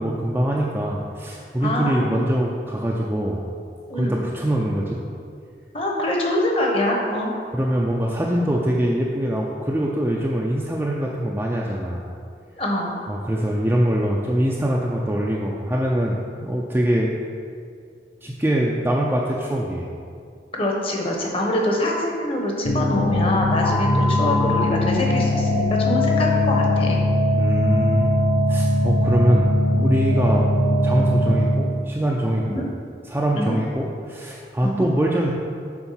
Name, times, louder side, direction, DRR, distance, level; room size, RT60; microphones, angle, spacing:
voice 1, 0.0-3.4 3.9-5.0 7.5-12.1 13.1-17.1 18.2-19.9 27.4-28.1 28.5-32.6 33.1-35.3, equal, 10° right, -3 dB, 0.4 m, -23 dB
voice 2, 1.6-2.2 3.9-4.2 5.7-7.3 12.6-13.0 20.5-27.0 32.5-32.7 33.3-33.6 34.6-34.8, left 1 dB, 30° left, -1 dB, 1.0 m, -24 dB
sound 1, 22.6-31.9, left 1 dB, 80° left, 1.1 m, -20 dB
7.0 x 4.4 x 5.7 m, 2.3 s
head